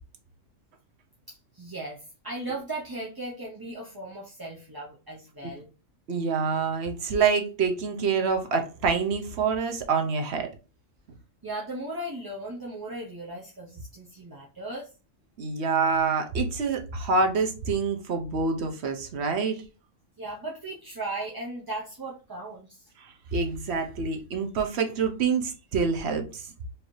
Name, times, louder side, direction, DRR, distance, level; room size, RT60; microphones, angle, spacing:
voice 1, 1.3-5.7 11.4-14.9 20.2-22.9, right 2 dB, 25° right, 0.6 m, -37 dB
voice 2, 6.1-10.5 15.4-19.6 23.3-26.4, right 5 dB, 60° right, 1.1 m, -26 dB
4.7 x 2.7 x 3.1 m
omnidirectional pair, 1.3 m